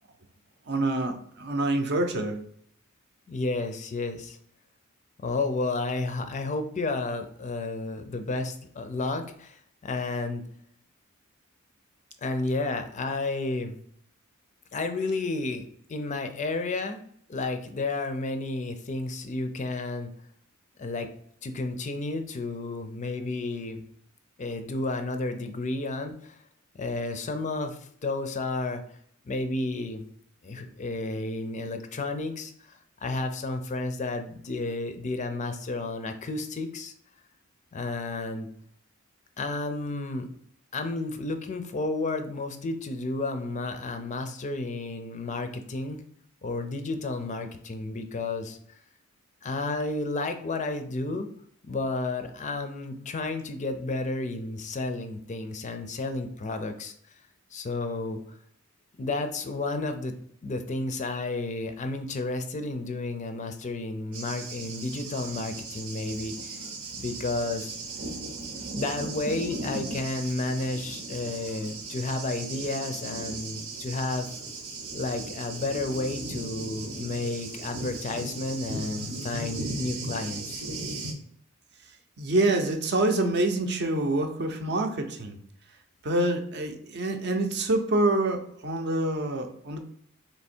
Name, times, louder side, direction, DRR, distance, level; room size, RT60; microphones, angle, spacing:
voice 1, 0.7-2.4 82.2-85.4 86.0-89.8, right 2 dB, 50° right, 5 dB, 0.6 m, -26 dB
voice 2, 3.3-4.4 5.2-10.4 12.2-13.7 14.7-17.0 17.3-20.1 20.8-21.1 21.4-23.8 24.4-26.4 26.8-28.8 29.3-30.0 30.4-36.9 37.7-38.5 39.4-40.3 40.7-46.0 46.4-48.6 49.4-51.3 51.7-56.9 57.5-58.4 59.0-60.1 60.4-66.6 66.9-67.8 68.7-74.3 74.9-80.6, left 2 dB, 35° left, 7 dB, 0.4 m, -32 dB
Thunder, 64.1-81.1, right 3 dB, 85° right, 0.9 m, -37 dB
3.4 x 2.9 x 4.3 m, 0.66 s
head